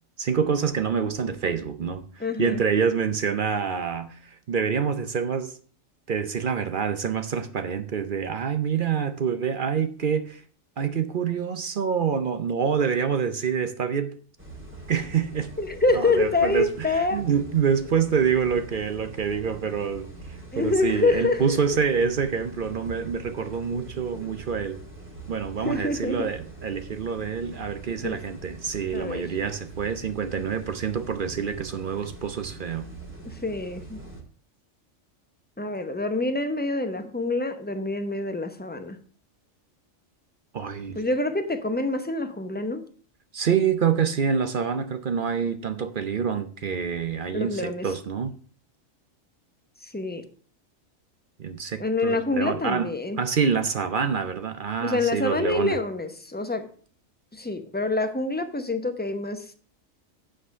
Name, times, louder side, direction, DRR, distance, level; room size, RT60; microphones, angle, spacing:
voice 1, 0.2-5.6 6.1-10.4 10.8-14.2 14.9-15.5 15.9-24.8 25.3-32.9 40.5-41.0 43.3-48.3 51.4-52.9 53.2-55.8, right 6 dB, 50° right, 0.7 m, -26 dB
voice 2, 2.2-2.6 15.6-17.2 20.5-21.8 25.6-26.3 28.0-28.2 28.9-29.3 33.3-34.0 35.6-39.0 40.9-42.8 47.3-47.9 49.8-50.2 51.8-53.2 54.8-56.7 57.3-59.5, left 2 dB, 10° left, 0.7 m, -26 dB
sound 1, 14.4-34.2, right 3 dB, 10° right, 1.9 m, -43 dB
8.7 x 5.0 x 6.5 m
omnidirectional pair, 1.4 m